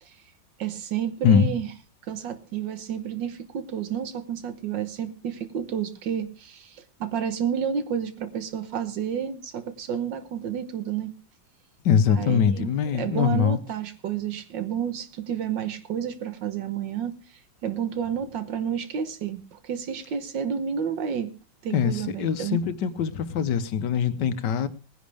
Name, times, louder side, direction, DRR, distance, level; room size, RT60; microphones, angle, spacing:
voice 1, 0.6-1.7 2.1-11.1 12.1-17.1 17.6-21.3 21.6-22.6, right 8 dB, 85° right, 11 dB, 1.9 m, -30 dB
voice 2, 11.8-13.6 21.7-24.7, left 7 dB, 75° left, 12 dB, 1.5 m, -23 dB
20.0 x 10.5 x 3.4 m, 0.32 s
omnidirectional pair, 1.9 m